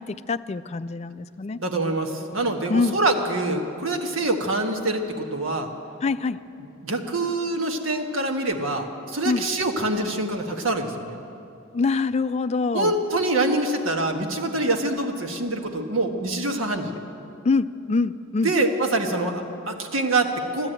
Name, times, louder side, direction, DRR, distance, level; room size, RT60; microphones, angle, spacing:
voice 1, 0.0-1.6 2.7-2.9 6.0-6.4 9.3-9.4 11.7-12.9 17.4-18.5, left 4 dB, 30° left, 12 dB, 0.3 m, -24 dB
voice 2, 1.6-5.7 6.8-11.2 12.7-16.9 18.4-20.7, right 2 dB, 85° right, 3 dB, 1.5 m, -25 dB
13.0 x 12.5 x 9.0 m, 2.7 s
head